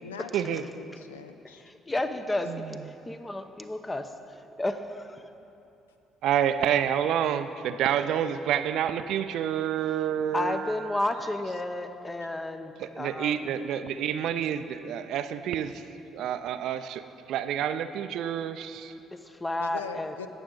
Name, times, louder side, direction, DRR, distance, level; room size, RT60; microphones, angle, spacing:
voice 1, 0.0-1.6 19.6-20.3, left 6 dB, 85° left, 9 dB, 0.4 m, -41 dB
voice 2, 1.7-2.8 3.1-4.1 4.6-5.2 10.3-13.5 19.1-20.1, left 1 dB, 20° left, 9 dB, 0.8 m, -32 dB
voice 3, 6.2-10.7 12.8-15.8 16.1-17.0 17.3-18.9, right 9 dB, 65° right, 11 dB, 0.4 m, -28 dB
17.5 x 7.0 x 3.9 m, 2.8 s
hypercardioid pair, 50°, 0 cm